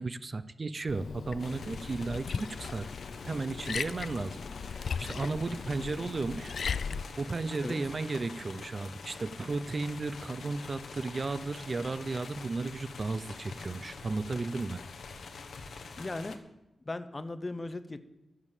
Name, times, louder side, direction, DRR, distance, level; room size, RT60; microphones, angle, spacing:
voice 1, 0.0-2.9 3.2-4.4 4.7-6.6 7.2-14.8, right 3 dB, 35° right, 14 dB, 0.5 m, -34 dB
Liquid, 0.9-7.0, left 6 dB, 65° left, 0.3 m, -37 dB
sound 1, 1.4-16.4, left 4 dB, 85° left, 1.2 m, -45 dB
voice 2, 16.0-16.4 16.9-18.0, left 2 dB, 25° left, 12 dB, 0.7 m, -37 dB
13.0 x 7.2 x 8.1 m, 0.95 s
wide cardioid pair, 180°, 0 cm